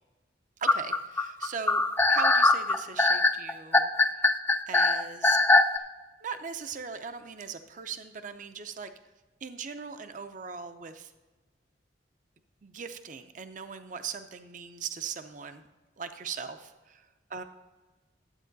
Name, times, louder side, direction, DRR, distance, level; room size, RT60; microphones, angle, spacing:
voice 1, 0.6-1.8 2.1-3.9 4.7-5.4 6.2-8.9 9.4-11.1 12.6-15.6 16.0-17.0 17.3-17.4, right 6 dB, 45° right, 9 dB, 0.6 m, -39 dB
sound 1, 0.7-5.8, left 2 dB, 10° left, 0.4 m, -21 dB
12.0 x 8.2 x 3.9 m, 1.2 s
head